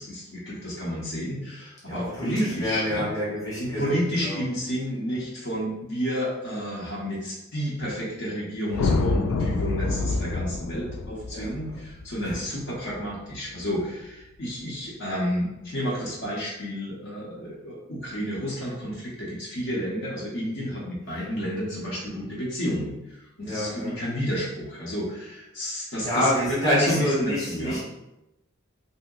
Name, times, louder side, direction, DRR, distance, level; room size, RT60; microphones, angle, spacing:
voice 1, 0.0-3.1 3.6-27.8, equal, 60° left, -5 dB, 0.9 m, -31 dB
voice 2, 1.9-4.4 11.3-11.5 12.2-12.3 22.1-22.2 23.4-24.0 26.0-27.8, equal, 15° left, -7 dB, 1.0 m, -27 dB
sound 1, 8.7-13.1, left 3 dB, 85° left, 0.3 m, -27 dB
2.7 x 2.1 x 3.7 m, 0.93 s
head